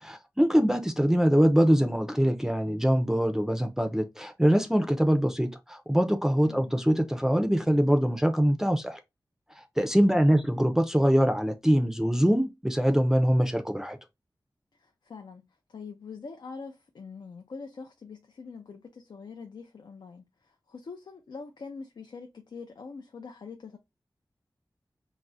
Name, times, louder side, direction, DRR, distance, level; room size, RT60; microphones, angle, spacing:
voice 1, 0.0-9.0 9.6-14.0, equal, 5° right, 0.4 m, -23 dB
voice 2, 14.7-23.8, left 4 dB, 75° left, 0.4 m, -44 dB
2.3 x 2.0 x 3.8 m
wide cardioid pair, 65°, 8 cm